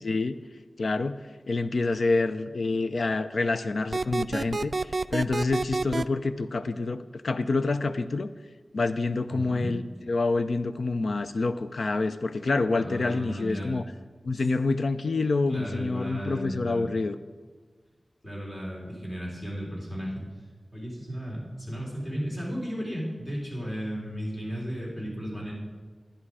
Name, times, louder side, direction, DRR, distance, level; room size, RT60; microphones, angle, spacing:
voice 1, 0.0-0.4 0.8-1.2 1.5-8.3 8.7-13.8 14.2-17.2, left 3 dB, 75° left, 11 dB, 0.5 m, -27 dB
sound 1, 3.9-6.0, right 3 dB, 50° right, 0.3 m, -28 dB
voice 2, 9.3-9.7 12.8-13.7 15.5-16.9 18.2-20.3 20.7-25.5, equal, 40° left, -4 dB, 4.1 m, -34 dB
11.5 x 10.0 x 4.8 m, 1.5 s
wide cardioid pair, 95°, 0 cm